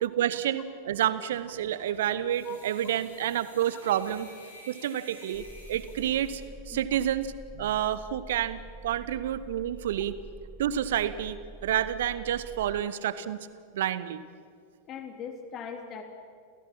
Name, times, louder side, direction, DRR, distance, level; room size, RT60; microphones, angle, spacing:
voice 1, 0.0-4.3 4.7-6.4 6.7-10.1 10.6-13.4 13.7-14.2, right 11 dB, 55° right, 14 dB, 1.0 m, -29 dB
sound 1, 1.3-6.5, left 1 dB, 75° left, 4.5 m, -52 dB
sound 2, 5.3-12.8, right 2 dB, 5° right, 0.8 m, -46 dB
voice 2, 14.8-16.0, left 7 dB, 30° left, 5 dB, 2.9 m, -40 dB
29.0 x 16.5 x 6.0 m, 2.2 s
figure-of-eight pair, 90°, 0 cm